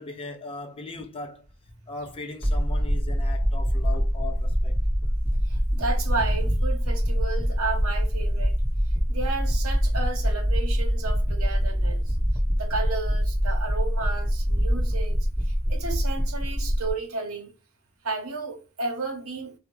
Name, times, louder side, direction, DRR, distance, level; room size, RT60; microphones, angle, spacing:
voice 1, 0.0-1.4 1.9-4.8, left 3 dB, 25° left, 0.5 m, -38 dB
sound 1, 2.4-16.9, equal, 5° left, 1.7 m, -24 dB
voice 2, 5.4-8.6 9.1-12.2 12.5-17.5 18.0-19.6, right 3 dB, 70° right, 0.8 m, -33 dB
3.4 x 2.3 x 3.1 m
head